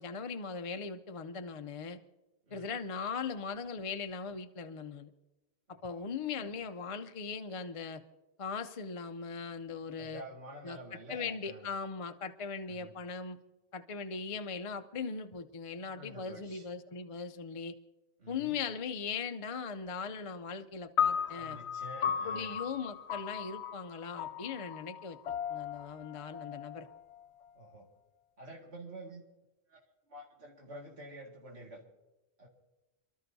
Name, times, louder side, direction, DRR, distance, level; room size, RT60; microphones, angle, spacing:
voice 1, 0.0-2.0 2.5-5.1 5.8-8.0 8.4-10.2 10.6-10.8 11.1-13.4 13.7-17.8 18.3-21.6 22.2-26.9, left 5 dB, 40° left, 8 dB, 0.5 m, -39 dB
voice 2, 2.4-2.8 5.7-6.1 6.4-6.5 10.0-11.7 12.7-12.9 15.8-16.7 18.2-18.6 21.3-22.6 27.5-27.9 28.4-29.2 29.7-29.8 30.1-31.8 32.4-32.5, right 1 dB, 80° right, -3 dB, 2.3 m, -49 dB
sound 1, 21.0-27.4, left 8 dB, 90° left, 0.9 m, -36 dB
28.5 x 12.5 x 2.7 m, 1.0 s
omnidirectional pair, 1.1 m